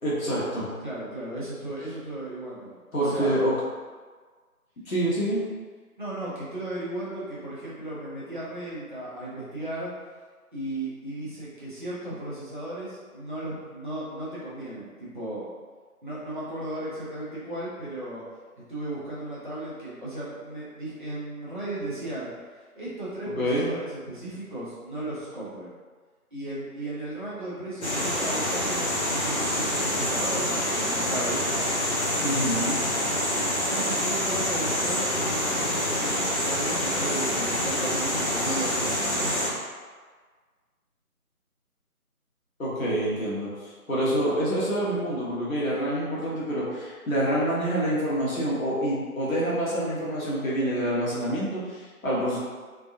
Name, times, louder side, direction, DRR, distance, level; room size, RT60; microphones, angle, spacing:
voice 1, 0.0-0.7 2.9-3.5 4.9-5.4 23.4-23.7 32.2-32.8 42.6-52.4, right 1 dB, 65° left, -7 dB, 1.3 m, -27 dB
voice 2, 0.8-3.3 6.0-9.9 10.5-15.5 16.0-18.2 18.7-22.3 22.7-25.7 26.3-31.4 33.7-39.4, right 1 dB, 35° right, -10 dB, 0.9 m, -35 dB
sound 1, 27.8-39.5, left 1 dB, 50° left, 0.7 m, -26 dB
3.5 x 2.3 x 2.5 m, 1.5 s
figure-of-eight pair, 165°, 45 cm